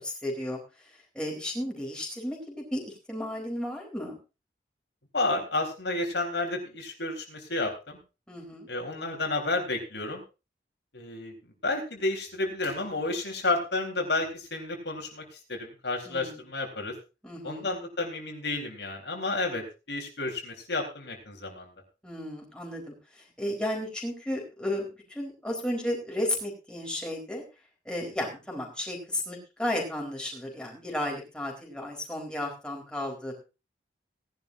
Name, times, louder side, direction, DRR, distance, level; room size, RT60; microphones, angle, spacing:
voice 1, 0.0-4.2 8.3-8.7 16.0-16.4 17.2-17.7 22.0-27.4 27.8-33.4, left 1 dB, 5° left, -2 dB, 4.1 m, -34 dB
voice 2, 5.1-8.0 8.7-10.2 10.9-11.3 11.6-15.2 15.5-16.9 17.4-21.7, left 2 dB, 80° left, 2 dB, 3.9 m, -31 dB
18.5 x 11.0 x 2.6 m, 0.29 s
head